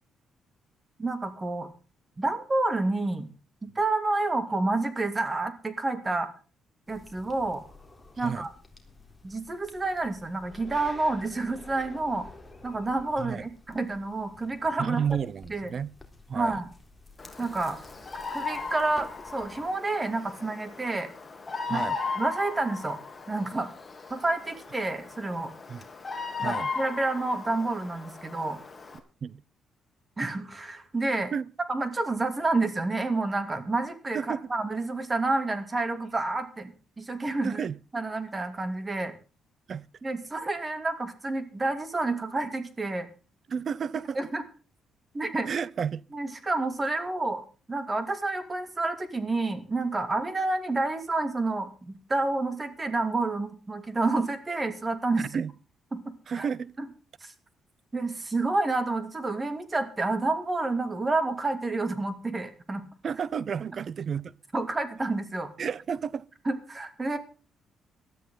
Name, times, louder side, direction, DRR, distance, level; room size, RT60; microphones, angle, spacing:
voice 1, 1.0-1.7 2.2-3.3 3.6-6.3 6.9-7.6 8.2-8.5 9.2-12.3 12.6-15.0 15.5-15.7 16.3-16.7 17.4-17.8 18.3-21.1 21.7-21.8 22.2-23.0 23.3-23.7 24.1-25.5 26.4-28.6 30.2-31.3 31.7-37.6 37.9-39.1 40.0-43.1 44.1-44.4 45.1-45.5 46.1-47.4 47.7-55.2 55.9-56.5 57.2-57.3 57.9-62.8 64.5-65.5 66.4-67.2, right 2 dB, 25° right, 2.8 m, -29 dB
sound 1, 6.9-19.7, left 2 dB, 10° left, 3.7 m, -51 dB
voice 2, 8.2-8.5 13.2-13.4 14.8-15.9 16.3-16.6 21.7-22.0 25.7-25.8 26.4-26.7 29.2-29.4 31.3-31.5 34.1-34.5 37.4-37.8 39.7-39.9 43.5-44.2 45.5-46.0 55.2-55.5 56.3-56.7 63.0-64.3 65.6-66.3, right 7 dB, 50° right, 0.6 m, -31 dB
Bird vocalization bird call bird song, 17.2-29.0, left 4 dB, 25° left, 3.3 m, -37 dB
18.5 x 13.0 x 3.9 m
cardioid pair, 90°, 0 cm